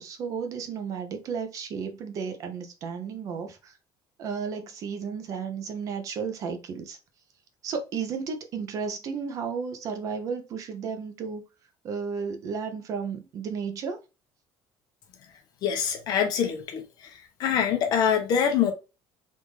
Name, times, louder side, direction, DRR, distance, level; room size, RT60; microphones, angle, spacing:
voice 1, 0.0-3.7 4.2-7.0 7.6-11.4 11.8-14.0, right 6 dB, 40° right, 0.5 m, -33 dB
voice 2, 15.6-18.7, left 8 dB, 45° left, 0.8 m, -25 dB
3.5 x 2.5 x 3.0 m
cardioid pair, 170°, 9 cm